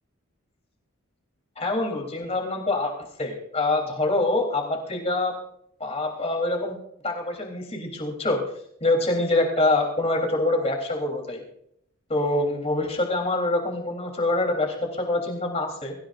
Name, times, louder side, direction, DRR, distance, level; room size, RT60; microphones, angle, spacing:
voice 1, 1.6-2.9 3.2-5.3 5.8-6.8 7.0-8.4 8.8-11.4 12.1-15.9, left 2 dB, 30° left, 2 dB, 3.5 m, -25 dB
24.5 x 15.5 x 2.6 m, 0.72 s
head